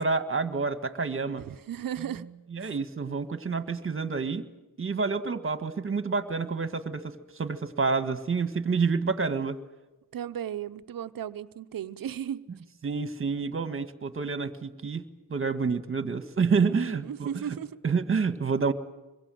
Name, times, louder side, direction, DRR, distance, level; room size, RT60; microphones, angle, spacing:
voice 1, 0.0-1.4 2.5-4.5 4.8-9.6 12.8-15.0 15.3-17.3 17.8-18.7, right 4 dB, 35° right, 1.7 m, -28 dB
voice 2, 1.4-2.3 2.6-2.7 10.1-12.5 16.5-17.8, right 9 dB, 60° right, 0.9 m, -36 dB
26.0 x 22.5 x 7.8 m
cardioid pair, 90°, 39 cm